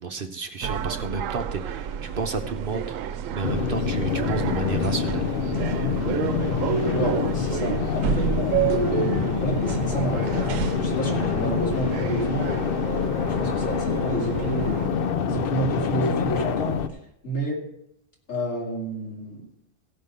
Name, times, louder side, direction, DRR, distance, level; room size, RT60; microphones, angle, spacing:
voice 1, 0.0-3.0 3.2-5.3, right 4 dB, 50° right, 7 dB, 0.8 m, -31 dB
sound 1, 0.6-14.9, right 9 dB, 85° right, 1.0 m, -30 dB
sound 2, 3.4-16.9, left 7 dB, 55° left, 0.7 m, -26 dB
voice 2, 6.9-12.5 12.8-14.8 15.2-17.0 17.2-17.6 18.3-19.5, right 1 dB, 80° left, -2 dB, 3.1 m, -30 dB
16.0 x 5.4 x 6.5 m, 0.79 s
omnidirectional pair, 1.3 m